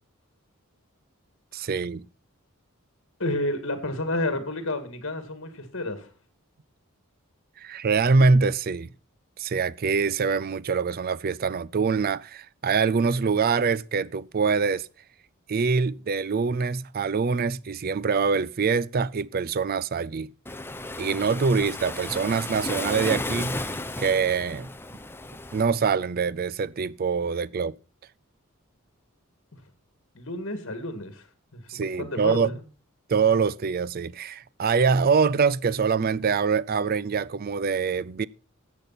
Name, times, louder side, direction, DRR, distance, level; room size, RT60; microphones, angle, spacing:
voice 1, 1.5-2.1 7.6-8.9 9.4-14.9 15.5-20.3 21.0-24.7 25.5-27.7 31.7-32.5 33.1-38.3, right 5 dB, 45° right, 0.4 m, -24 dB
voice 2, 3.2-6.1 29.5-29.6 30.1-31.2 31.5-32.6, left 1 dB, 60° left, 2.0 m, -31 dB
Waves surf, 20.5-25.6, left 2 dB, 10° left, 0.7 m, -34 dB
13.5 x 8.3 x 4.1 m
head